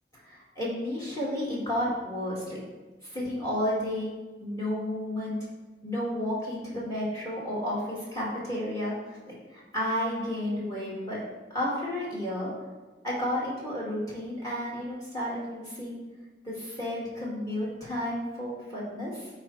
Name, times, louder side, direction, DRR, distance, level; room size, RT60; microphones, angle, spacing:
voice 1, 0.3-2.6 3.0-4.1 4.4-5.4 5.8-11.2 11.5-12.5 13.0-16.0 16.4-19.3, left 1 dB, 20° left, -6 dB, 2.0 m, -32 dB
13.5 x 4.6 x 3.2 m, 1.2 s
head